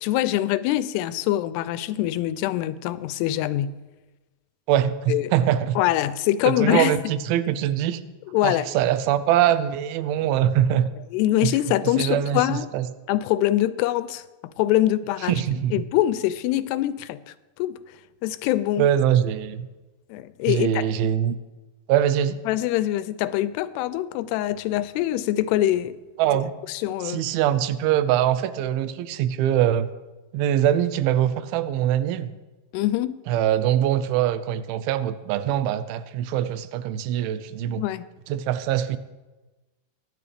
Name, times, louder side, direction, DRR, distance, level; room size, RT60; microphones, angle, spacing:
voice 1, 0.0-3.8 5.1-5.3 5.8-7.0 8.3-8.7 11.1-12.7 13.1-14.2 14.6-15.4 15.7-17.8 18.2-18.9 20.1-20.9 22.5-25.9 26.7-27.2 32.7-33.2 37.8-38.1, left 14 dB, 90° left, 15 dB, 2.7 m, -24 dB
voice 2, 4.7-5.8 6.5-8.0 8.4-10.9 11.4-11.5 11.8-12.9 15.3-15.8 18.8-19.7 20.5-21.4 21.9-22.4 26.2-26.5 27.0-29.9 30.3-32.3 33.3-37.8 38.3-39.0, right 11 dB, 80° right, 13 dB, 2.4 m, -23 dB
25.0 x 11.0 x 3.4 m, 1.2 s
omnidirectional pair, 4.7 m